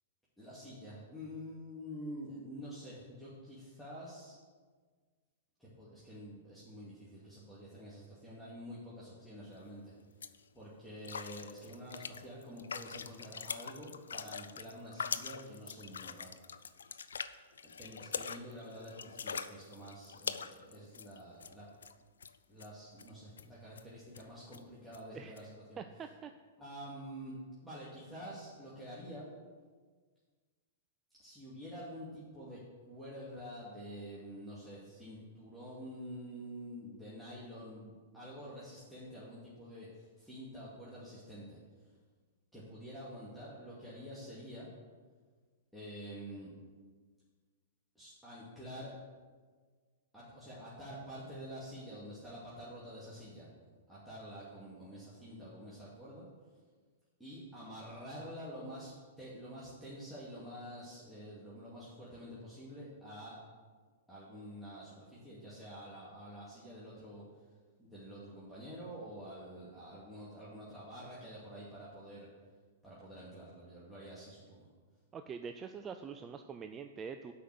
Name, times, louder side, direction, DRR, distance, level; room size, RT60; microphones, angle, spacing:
voice 1, 0.4-4.4 5.6-9.9 10.5-16.7 17.8-21.7 22.5-25.8 26.6-29.3 31.2-41.6 42.5-44.7 45.7-46.5 47.9-48.9 50.1-53.5 53.9-56.3 57.2-63.4 64.1-67.2 67.8-72.3 72.8-74.7, equal, ahead, -10 dB, 2.5 m, -48 dB
sound 1, 9.6-9.7 10.0-10.4 11.0-21.6 21.8-21.9 22.2-22.7 23.0-23.1 23.4-23.5 23.8-23.9 24.1-24.3 24.5-24.6 24.9-25.0 25.4-25.5, left 6 dB, 75° left, 0.5 m, -43 dB
voice 2, 25.8-26.3 75.1-77.3, right 6 dB, 25° right, 8 dB, 0.4 m, -44 dB
8.2 x 5.6 x 7.8 m, 1.5 s
figure-of-eight pair, 110°, 0 cm